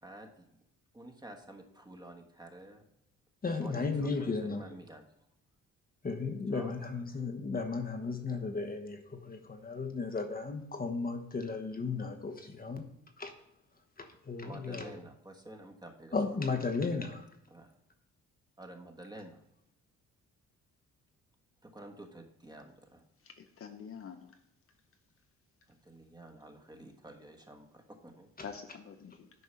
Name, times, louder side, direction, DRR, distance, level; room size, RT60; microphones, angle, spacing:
voice 1, 0.0-0.6 0.9-2.8 3.6-5.0 6.5-6.7 14.4-16.2 17.5-17.7 18.6-19.4 21.6-23.0 25.7-28.3, right 1 dB, 15° right, 3 dB, 1.4 m, -50 dB
voice 2, 3.4-4.7 6.0-12.9 13.2-13.4 14.0-15.0 16.1-17.3, left 4 dB, 30° left, 6 dB, 1.1 m, -35 dB
voice 3, 23.2-24.4 28.4-29.3, left 7 dB, 45° left, 6 dB, 0.8 m, -46 dB
9.5 x 4.6 x 5.6 m, 0.79 s
cardioid pair, 90°, 30 cm